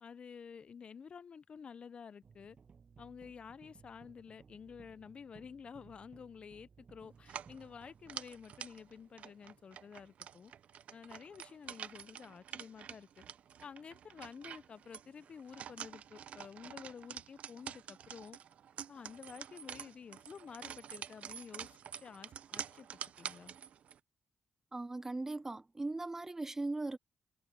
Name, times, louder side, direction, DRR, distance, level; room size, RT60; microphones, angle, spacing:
voice 1, 0.0-2.6 3.0-10.5 10.9-13.2 13.6-18.4 18.9-21.7 22.0-23.5, left 6 dB, 50° left, 0.6 m, -51 dB
sound 1, 2.2-9.5, right 5 dB, 50° right, 7.0 m, -61 dB
sound 2, 7.2-24.0, right 9 dB, 70° right, 0.7 m, -48 dB
voice 2, 24.7-27.0, right 2 dB, 20° right, 0.4 m, -39 dB
cardioid pair, 65°, 2 cm